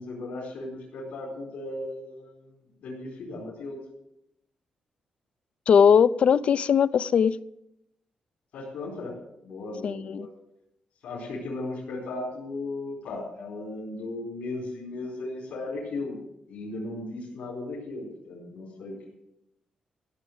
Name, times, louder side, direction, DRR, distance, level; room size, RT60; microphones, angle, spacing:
voice 1, 0.0-2.5 2.8-3.8 8.5-9.1 9.4-10.3 11.0-16.2 16.5-19.1, left 2 dB, 85° left, -4 dB, 4.6 m, -36 dB
voice 2, 5.7-7.4 9.8-10.3, left 7 dB, 60° left, 17 dB, 0.5 m, -20 dB
15.0 x 7.0 x 8.0 m, 0.83 s
cardioid pair, 105°, 2 cm